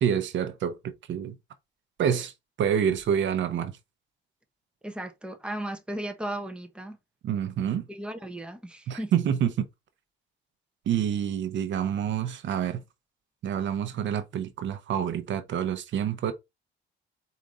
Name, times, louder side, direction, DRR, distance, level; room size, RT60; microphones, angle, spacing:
voice 1, 0.0-1.3 2.0-2.3 2.6-3.8 7.2-7.9 8.9-9.7 10.9-12.8 13.4-16.3, right 9 dB, 70° right, 0.8 m, -27 dB
voice 2, 4.8-7.0 7.9-9.2, right 1 dB, 5° right, 0.9 m, -36 dB
4.8 x 2.8 x 3.8 m
cardioid pair, 90°, 20 cm